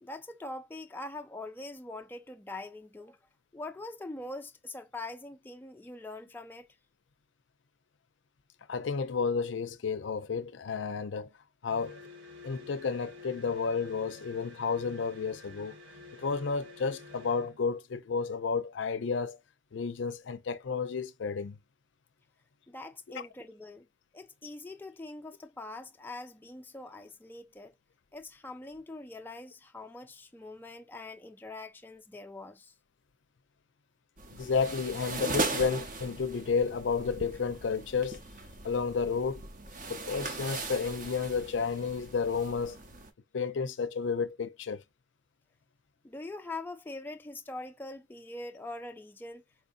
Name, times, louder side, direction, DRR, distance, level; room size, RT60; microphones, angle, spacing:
voice 1, 0.0-3.2 3.5-6.7 22.7-23.9 24.1-27.7 28.1-32.7 46.0-49.4, left 2 dB, 10° left, 0.3 m, -43 dB
voice 2, 8.7-11.3 11.6-12.0 12.4-15.8 16.1-19.4 19.7-21.6 23.1-23.2 34.3-38.2 38.6-39.4 39.9-42.8 43.3-44.8, left 5 dB, 70° left, 0.5 m, -31 dB
sound 1, 11.7-17.6, left 2 dB, 80° right, 1.0 m, -50 dB
sound 2, 34.2-43.1, right 3 dB, 45° right, 0.7 m, -39 dB
4.2 x 2.7 x 2.5 m
head